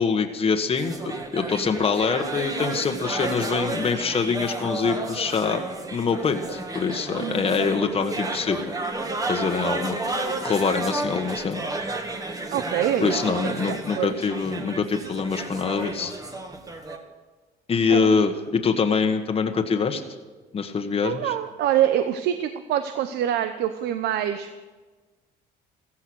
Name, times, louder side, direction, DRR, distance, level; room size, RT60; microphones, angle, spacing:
voice 1, 0.0-5.6 5.9-8.7 9.3-11.6 13.0-16.1 17.7-20.0 20.5-21.3, left 5 dB, 35° left, 5 dB, 1.5 m, -24 dB
sound 1, 0.7-17.0, right 2 dB, 20° right, 2.0 m, -31 dB
voice 2, 7.2-7.6 12.5-13.2 13.4-14.1 17.9-18.1 21.0-24.5, right 11 dB, 75° right, 9 dB, 0.9 m, -25 dB
15.0 x 14.5 x 6.4 m, 1.3 s
cardioid pair, 110°, 17 cm